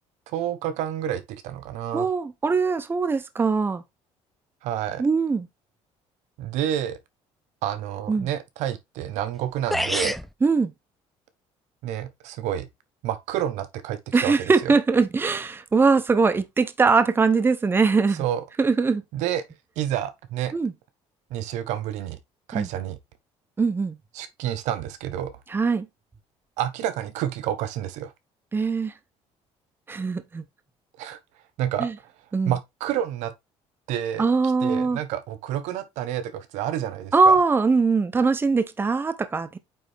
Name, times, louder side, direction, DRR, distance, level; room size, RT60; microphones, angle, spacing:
voice 1, 0.3-2.1 4.6-5.0 6.4-7.0 7.6-10.2 11.8-12.7 13.0-14.7 18.2-18.4 19.1-19.4 19.8-20.5 21.3-22.2 22.5-23.0 24.1-25.3 26.6-28.1 31.0-31.2 31.6-32.1 32.5-33.3 33.9-34.3 34.6-37.4, right 11 dB, 85° right, 1.0 m, -29 dB
voice 2, 1.9-3.8 5.0-5.5 8.1-8.3 10.4-10.7 14.1-18.2 18.6-19.0 20.5-20.7 22.5-22.7 23.6-24.0 25.5-25.9 28.5-28.9 29.9-30.4 31.8-31.9 32.3-32.5 34.2-35.0 37.1-39.6, right 4 dB, 20° right, 0.8 m, -21 dB
sound 1, 9.3-9.4 9.7-10.3, equal, ahead, 0.3 m, -25 dB
8.6 x 3.4 x 3.4 m
cardioid pair, 125°, 12 cm